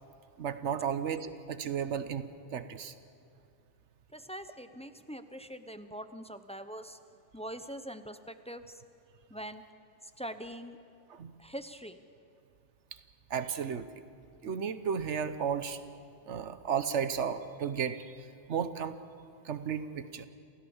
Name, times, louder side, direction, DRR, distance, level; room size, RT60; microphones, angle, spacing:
voice 1, 0.4-2.9 11.1-11.3 13.3-13.9 14.4-15.8 16.3-18.9 19.4-20.3, right 7 dB, 70° right, 11 dB, 1.2 m, -34 dB
voice 2, 4.1-7.0 7.3-8.8 9.3-9.6 10.2-10.8 11.4-12.0, equal, 5° left, 10 dB, 0.5 m, -43 dB
28.5 x 16.0 x 7.1 m, 2.5 s
omnidirectional pair, 1.3 m